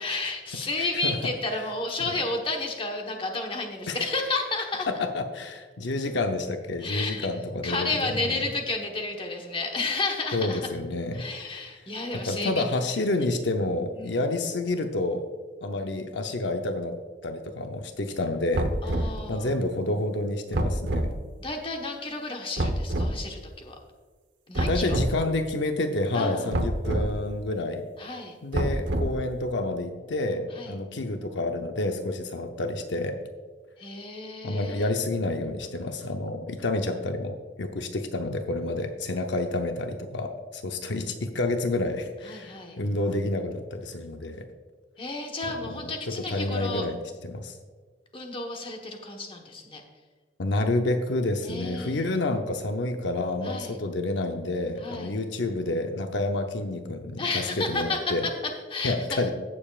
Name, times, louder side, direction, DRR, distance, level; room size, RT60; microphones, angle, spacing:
voice 1, 0.0-4.9 6.8-7.3 7.6-10.7 11.1-13.0 13.7-14.2 18.8-19.5 21.4-23.7 24.5-25.0 26.1-26.5 28.0-28.4 30.5-30.7 33.8-34.9 42.2-42.8 45.0-46.8 48.1-49.8 51.4-52.0 53.4-53.8 54.8-55.2 57.2-58.3 58.7-59.2, left 3 dB, 30° left, 2 dB, 1.2 m, -32 dB
voice 2, 0.8-1.2 3.9-4.1 4.9-7.9 8.2-8.4 10.3-11.7 12.3-15.2 15.6-17.0 17.2-21.1 24.7-27.8 28.4-33.2 34.4-44.4 45.5-47.5 50.4-58.3 58.8-59.3, left 2 dB, 80° left, 6 dB, 0.7 m, -29 dB
sound 1, 18.5-19.2 20.5-21.1 22.6-23.1 24.6-25.1 26.5-27.1 28.5-29.3, right 1 dB, 75° right, 0.9 m, -26 dB
16.0 x 7.0 x 2.4 m, 1.4 s
head